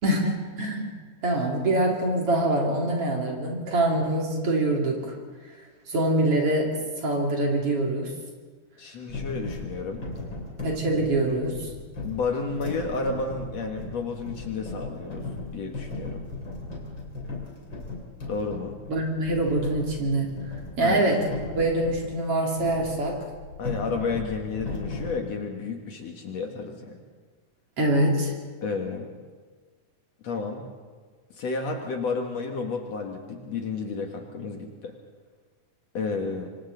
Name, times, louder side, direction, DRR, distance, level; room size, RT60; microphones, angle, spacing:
voice 1, 0.0-0.9 1.2-5.2 5.9-8.1 10.6-11.5 18.9-20.3 20.8-23.3 27.8-28.3, right 1 dB, 45° right, 0 dB, 3.4 m, -24 dB
voice 2, 8.8-10.0 10.9-11.0 12.0-15.3 15.5-16.2 18.3-18.8 20.8-21.0 23.6-27.0 28.6-29.1 30.2-30.7 31.3-34.9 35.9-36.5, left 4 dB, 55° left, 2 dB, 2.6 m, -31 dB
sound 1, 9.1-22.1 22.5-25.2, left 3 dB, 35° left, 3.8 m, -37 dB
26.5 x 25.0 x 4.0 m, 1.5 s
omnidirectional pair, 3.8 m